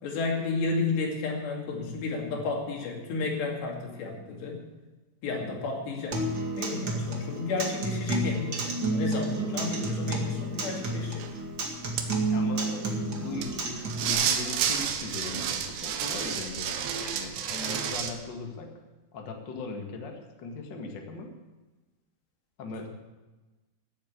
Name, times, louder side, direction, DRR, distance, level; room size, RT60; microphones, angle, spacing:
voice 1, 0.0-4.6 5.2-6.3 6.6-11.2, left 3 dB, 80° left, 0 dB, 4.6 m, -32 dB
Acoustic guitar, 6.1-14.1, right 2 dB, 40° right, 1.9 m, -31 dB
sound 1, 11.2-11.3 12.0-12.1 13.4-13.6 13.9-18.1, right 8 dB, 80° right, 3.3 m, -30 dB
voice 2, 12.2-18.7 19.1-21.3 22.6-22.9, left 3 dB, 50° left, 2 dB, 1.4 m, -39 dB
15.5 x 8.3 x 8.1 m, 1.2 s
omnidirectional pair, 4.9 m